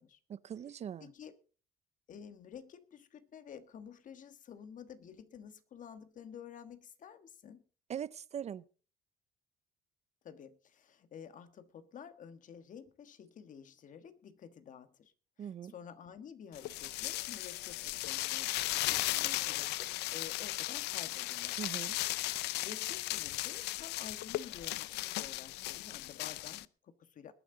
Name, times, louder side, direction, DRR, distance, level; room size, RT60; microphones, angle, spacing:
voice 1, 0.3-1.1 7.9-8.6 15.4-15.7 21.5-22.0, right 9 dB, 40° right, 0.5 m, -41 dB
voice 2, 1.0-1.4 2.1-7.6 10.2-15.1 15.4-21.6 22.6-27.3, left 7 dB, 50° left, 1.4 m, -51 dB
sound 1, 16.6-26.7, left 18 dB, 85° left, 0.5 m, -36 dB
21.0 x 9.4 x 3.8 m
cardioid pair, 110°, 17 cm